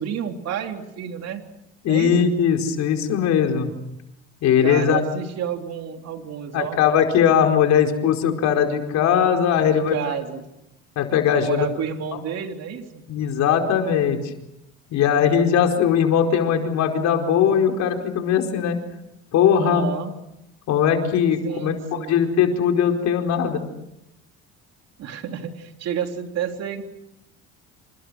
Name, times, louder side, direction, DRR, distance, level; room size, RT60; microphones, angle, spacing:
voice 1, 0.0-1.4 1.9-2.3 4.6-6.8 9.6-10.4 11.3-13.0 19.6-20.1 21.4-22.2 25.0-26.8, right 8 dB, 60° right, 5 dB, 3.7 m, -30 dB
voice 2, 1.8-3.7 4.4-5.0 6.5-9.9 11.0-11.7 13.1-14.2 14.9-18.8 19.3-19.9 20.7-23.6, left 8 dB, 65° left, 4 dB, 4.8 m, -20 dB
29.0 x 27.0 x 6.4 m, 0.86 s
supercardioid pair, 80°, 30 cm